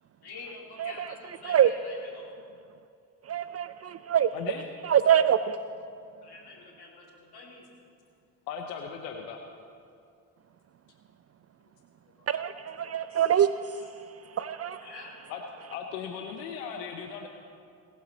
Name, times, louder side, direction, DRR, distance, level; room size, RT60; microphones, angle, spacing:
voice 1, 0.2-2.3 6.2-7.7 11.6-11.7 12.0-12.3 14.8-15.1, left 3 dB, 50° left, 3.6 m, -47 dB
voice 2, 0.8-1.1 1.4-1.7 3.2-4.3 4.8-5.6 12.3-14.9, right 9 dB, 35° right, 0.4 m, -25 dB
voice 3, 4.3-4.6 8.5-9.4 13.1-13.2 15.3-15.4 15.7-17.3, left 7 dB, 80° left, 0.9 m, -37 dB
20.0 x 7.6 x 4.1 m
hypercardioid pair, 45°, 48 cm